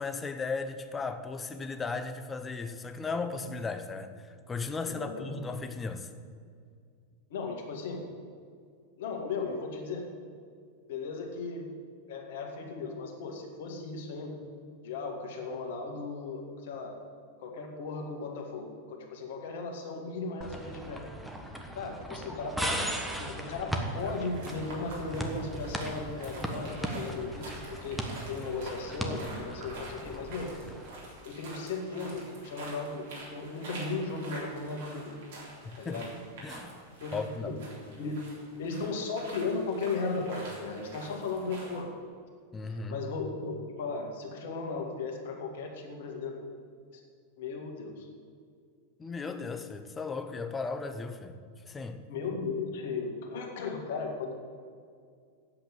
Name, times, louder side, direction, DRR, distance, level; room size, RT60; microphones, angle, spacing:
voice 1, 0.0-6.1 35.8-36.0 36.4-36.8 37.1-37.6 42.5-43.0 49.0-51.3 51.7-52.0, left 4 dB, 15° left, 0.8 m, -36 dB
voice 2, 4.8-5.4 7.3-8.0 9.0-10.1 10.9-11.7 12.1-14.4 14.8-16.9 17.4-21.0 21.7-22.9 23.2-30.5 31.2-35.2 35.8-36.1 37.0-37.6 38.0-38.2 38.6-41.9 42.7-46.4 47.4-48.1 52.1-54.3, left 4 dB, 55° left, 1.9 m, -36 dB
sound 1, 20.4-30.9, right 1 dB, 5° right, 1.2 m, -37 dB
sound 2, 23.9-41.8, right 2 dB, 55° right, 3.5 m, -47 dB
8.7 x 7.7 x 8.7 m
figure-of-eight pair, 90°, 0 cm